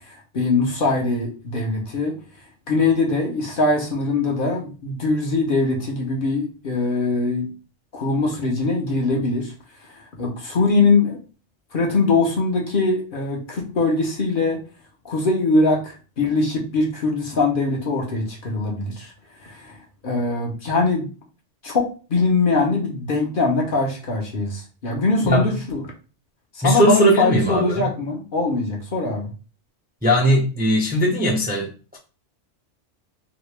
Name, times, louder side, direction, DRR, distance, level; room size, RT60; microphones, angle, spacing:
voice 1, 0.3-2.1 2.7-7.5 7.9-9.5 10.2-11.2 11.7-14.6 15.0-19.1 19.4-19.8 20.0-21.1 21.6-25.8 26.6-29.3, left 3 dB, 50° left, 0.9 m, -22 dB
voice 2, 25.2-25.7 26.6-27.9 30.0-32.0, right 1 dB, 15° right, 0.4 m, -19 dB
2.9 x 2.8 x 3.2 m
omnidirectional pair, 1.2 m